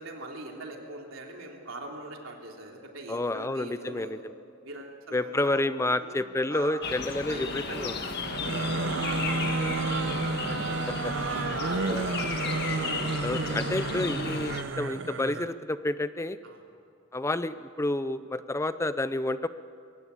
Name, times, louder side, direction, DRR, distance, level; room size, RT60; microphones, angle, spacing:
voice 1, 0.0-4.2 4.6-9.3 9.6-10.5 11.1-12.6 16.4-16.6, right 2 dB, 90° right, 1 dB, 3.3 m, -42 dB
voice 2, 3.1-4.2 5.1-7.9 11.0-11.1 11.9-12.0 13.2-16.4 17.1-19.5, left 2 dB, 15° left, 13 dB, 0.5 m, -29 dB
sound 1, 6.8-14.6, left 5 dB, 55° left, 1.5 m, -35 dB
sound 2, 8.2-15.5, right 3 dB, 65° right, 0.8 m, -31 dB
22.5 x 17.5 x 8.3 m, 2.3 s
head